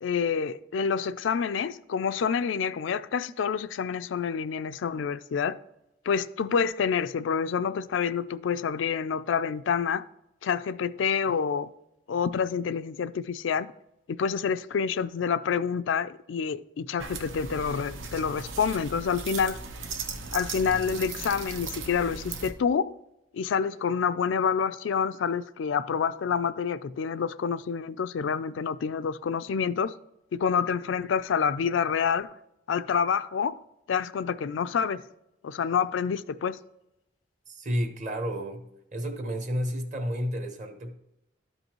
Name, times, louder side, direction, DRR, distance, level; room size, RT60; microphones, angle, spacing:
voice 1, 0.0-5.6 6.1-10.1 10.4-11.7 12.1-13.7 14.1-19.6 20.3-23.0 23.3-30.0 30.3-32.4 32.7-33.6 33.9-35.0 35.4-36.6, left 6 dB, 80° left, 0.4 m, -28 dB
sound 1, 17.0-22.5, right 4 dB, 90° right, 0.9 m, -37 dB
voice 2, 37.5-38.6 38.9-40.9, equal, 40° right, 1.0 m, -31 dB
12.5 x 5.4 x 3.0 m
head